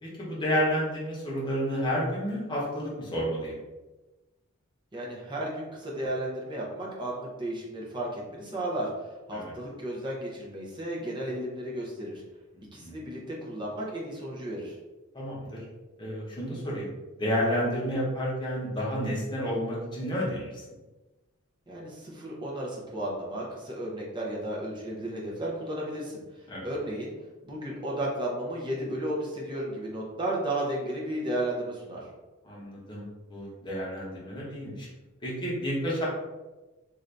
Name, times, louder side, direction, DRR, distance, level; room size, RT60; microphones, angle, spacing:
voice 1, 0.0-3.6 9.3-9.5 12.8-13.0 15.1-15.6 16.0-16.9 17.2-20.6 26.5-26.6 32.4-33.0 33.3-34.9 35.2-36.1, equal, 20° left, -5 dB, 0.8 m, -30 dB
voice 2, 4.9-8.9 9.3-12.2 12.7-14.8 21.7-27.1 27.4-32.1, right 1 dB, 20° right, -4 dB, 0.7 m, -34 dB
2.6 x 2.5 x 3.3 m, 1.1 s
head